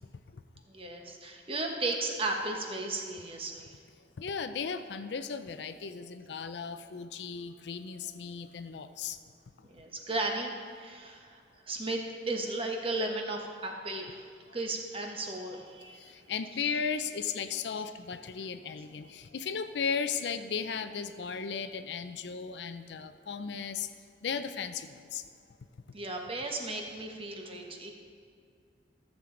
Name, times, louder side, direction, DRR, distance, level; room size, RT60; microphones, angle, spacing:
voice 1, 0.7-3.7 9.7-16.1 25.9-27.9, right 2 dB, 30° right, 2 dB, 1.1 m, -35 dB
voice 2, 4.2-9.2 15.9-23.9 24.2-25.2, left 6 dB, 70° left, 11 dB, 0.5 m, -36 dB
14.0 x 7.3 x 3.8 m, 2.2 s
head